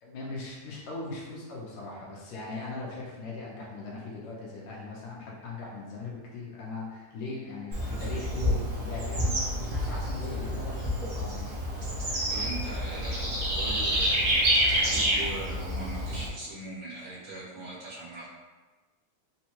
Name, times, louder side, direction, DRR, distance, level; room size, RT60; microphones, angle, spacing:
voice 1, 0.0-11.5, left 3 dB, 75° left, -4 dB, 2.0 m, -39 dB
Bird / Insect, 7.7-16.3, equal, 85° right, 0.8 m, -28 dB
voice 2, 12.3-18.3, right 2 dB, 65° right, -10 dB, 2.6 m, -41 dB
5.3 x 2.2 x 2.9 m, 1.3 s
omnidirectional pair, 3.4 m